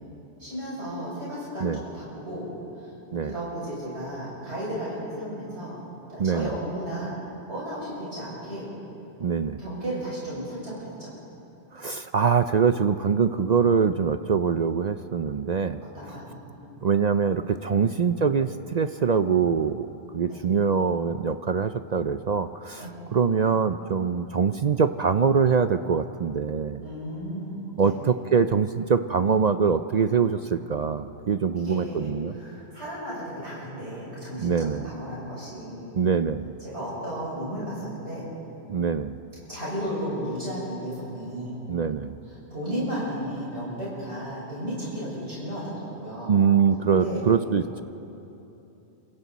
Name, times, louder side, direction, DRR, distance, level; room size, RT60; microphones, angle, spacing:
voice 1, 0.4-2.5 2.8-2.9 3.2-5.8 6.1-7.1 7.5-8.7 9.6-11.1 15.9-16.7 17.7-17.9 20.3-20.4 22.8-22.9 26.8-28.0 31.5-32.1 32.4-36.0 36.6-38.3 39.5-41.6 42.3-46.4 46.9-47.2, equal, 70° right, -8 dB, 6.8 m, -34 dB
voice 2, 6.2-6.6 9.2-9.6 11.7-15.8 16.8-19.9 20.1-26.8 27.8-32.4 34.4-34.9 35.9-36.5 38.7-39.2 41.7-42.2 46.3-47.8, right 6 dB, 50° right, 10 dB, 0.5 m, -23 dB
28.5 x 26.0 x 4.1 m, 2.9 s
omnidirectional pair, 1.2 m